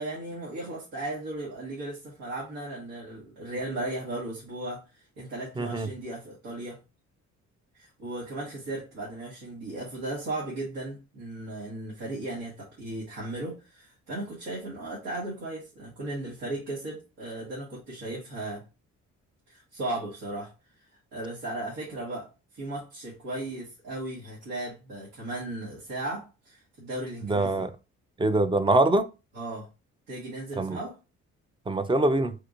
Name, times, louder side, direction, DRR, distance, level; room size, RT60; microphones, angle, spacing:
voice 1, 0.0-6.8 7.7-18.6 19.5-20.5 21.1-22.3 22.5-27.6 29.3-29.7 30.1-31.0, right 2 dB, 90° right, 1.5 m, -36 dB
voice 2, 5.6-5.9 27.2-27.7 28.2-29.1 30.6-30.8 31.7-32.3, right 2 dB, 15° right, 0.4 m, -24 dB
3.4 x 2.9 x 2.5 m
cardioid pair, 90°, 30 cm